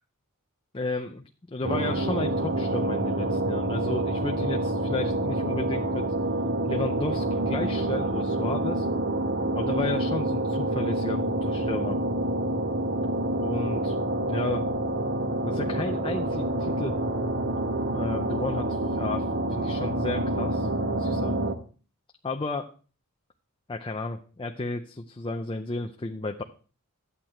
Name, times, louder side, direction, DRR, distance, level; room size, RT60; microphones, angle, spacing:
voice 1, 0.7-6.0 6.6-8.9 9.5-12.0 13.4-14.0 14.2-14.7 15.5-16.9 17.9-21.4 22.2-22.7 23.7-26.4, left 2 dB, 25° left, 4 dB, 0.6 m, -33 dB
sound 1, 1.6-21.5, right 1 dB, 55° right, 1.2 m, -27 dB
12.5 x 8.4 x 4.4 m, 0.38 s
head